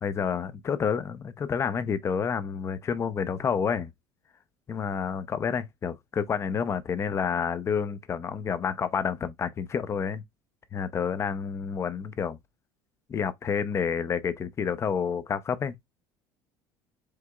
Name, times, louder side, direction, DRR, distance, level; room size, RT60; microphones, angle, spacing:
voice 1, 0.0-3.9 4.7-10.2 10.7-12.4 13.1-15.8, left 6 dB, 30° left, 0.6 m, -29 dB
4.8 x 3.4 x 2.3 m
cardioid pair, 115°, 9 cm